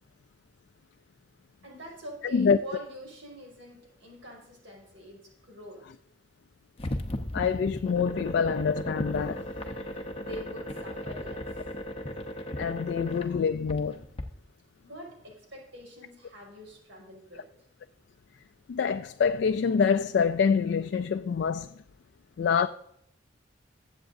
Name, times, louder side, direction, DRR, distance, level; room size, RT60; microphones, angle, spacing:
voice 1, 1.6-5.8 9.9-11.6 14.8-17.4, equal, 80° right, 5.2 m, -45 dB
sound 1, 6.8-14.2, left 1 dB, 30° left, 0.8 m, -36 dB
voice 2, 7.3-9.4 12.6-14.0 18.7-21.7 22.4-22.7, left 6 dB, 60° left, 0.3 m, -26 dB
20.5 x 8.1 x 2.6 m
head